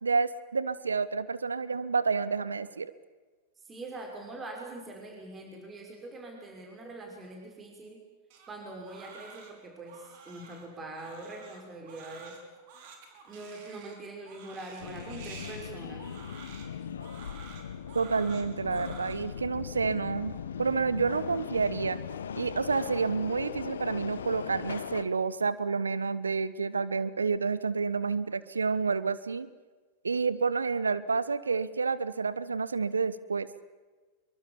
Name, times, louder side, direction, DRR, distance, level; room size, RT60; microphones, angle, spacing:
voice 1, 0.0-2.9 17.9-22.0 22.4-29.5 30.0-33.5, right 4 dB, 85° right, 17 dB, 1.1 m, -29 dB
voice 2, 3.6-8.0 8.5-12.4 13.3-16.1, right 2 dB, 20° right, 1 dB, 5.8 m, -43 dB
Crying sobbing, 8.3-19.1, right 5 dB, 55° right, 5.8 m, -50 dB
Subway metro underground, 14.8-25.0, left 7 dB, 75° left, 1.6 m, -39 dB
25.5 x 23.5 x 7.3 m, 1.3 s
figure-of-eight pair, 90°, 0 cm